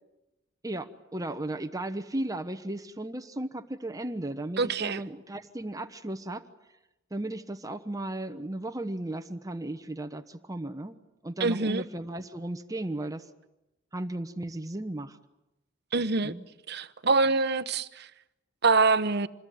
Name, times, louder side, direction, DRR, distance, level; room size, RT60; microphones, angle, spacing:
voice 1, 0.6-6.4 7.1-11.0 11.2-13.3 13.9-15.2 16.2-16.4, right 1 dB, 20° right, 1.1 m, -35 dB
voice 2, 4.6-5.0 11.4-11.8 15.9-16.3 16.7-18.1 18.6-19.3, right 3 dB, 60° right, 1.0 m, -25 dB
27.0 x 21.5 x 9.4 m
head